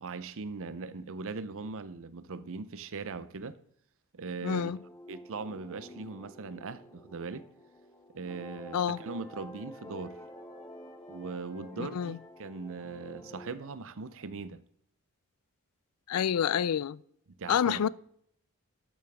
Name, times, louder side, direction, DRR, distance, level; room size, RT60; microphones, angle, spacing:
voice 1, 0.0-3.6 4.1-4.7 5.1-7.5 8.1-10.2 11.1-14.6 17.4-17.9, right 4 dB, 65° right, 0.7 m, -40 dB
voice 2, 4.4-4.8 8.7-9.0 11.8-12.2 16.1-17.0 17.5-17.9, left 8 dB, 80° left, 0.4 m, -28 dB
sound 1, 4.4-13.5, equal, 15° left, 0.6 m, -50 dB
Wind instrument woodwind instrument, 8.4-13.9, left 5 dB, 40° left, 3.7 m, -57 dB
12.5 x 7.4 x 3.5 m
head